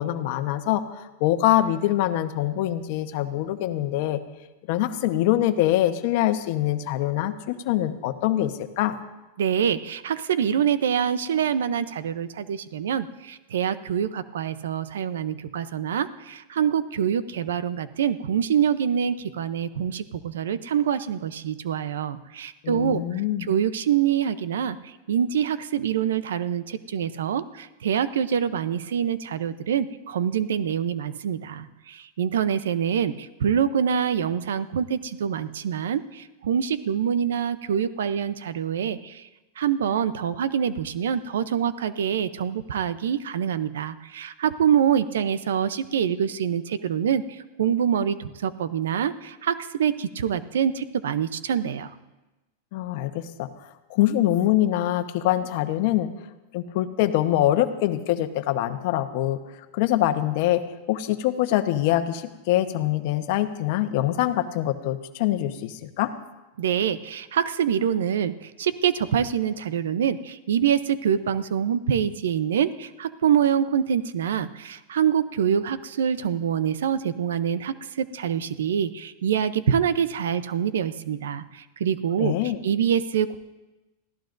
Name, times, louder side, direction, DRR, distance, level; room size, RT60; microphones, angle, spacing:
voice 1, 0.0-4.2 4.7-8.9 22.6-23.5 52.7-53.5 53.9-56.1 56.5-59.4 59.7-60.6 60.9-66.1 82.2-82.6, left 13 dB, 60° left, 9 dB, 1.0 m, -24 dB
voice 2, 9.4-23.0 23.5-24.8 25.1-39.2 39.6-47.2 47.6-51.9 66.6-82.3 82.6-83.4, right 8 dB, 90° right, 14 dB, 0.7 m, -25 dB
23.5 x 15.0 x 2.6 m, 1.1 s
supercardioid pair, 135°, 0 cm